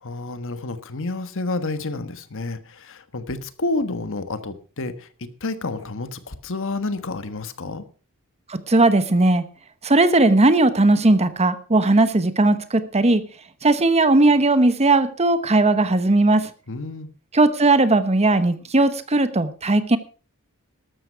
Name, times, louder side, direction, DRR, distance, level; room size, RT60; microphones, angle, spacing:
voice 1, 0.0-7.8 16.7-17.1, left 2 dB, 60° left, 11 dB, 1.4 m, -29 dB
voice 2, 8.5-9.4 9.8-13.2 13.6-16.5 17.3-20.0, right 2 dB, 30° right, 12 dB, 1.0 m, -17 dB
13.0 x 13.0 x 4.7 m, 0.38 s
head